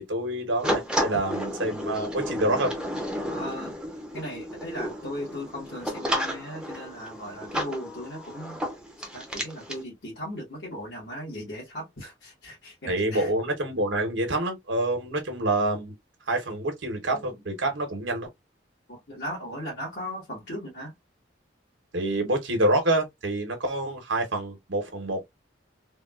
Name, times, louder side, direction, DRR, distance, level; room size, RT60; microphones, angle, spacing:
voice 1, 0.0-2.7 12.9-15.9 16.3-18.3 21.9-25.2, right 1 dB, 85° right, 1.0 m, -27 dB
sound 1, 0.6-9.8, equal, 5° right, 0.6 m, -32 dB
voice 2, 3.3-3.7 4.1-8.6 9.1-13.3 17.1-17.3 18.9-20.9, equal, 65° left, 1.4 m, -37 dB
3.5 x 2.3 x 2.3 m
head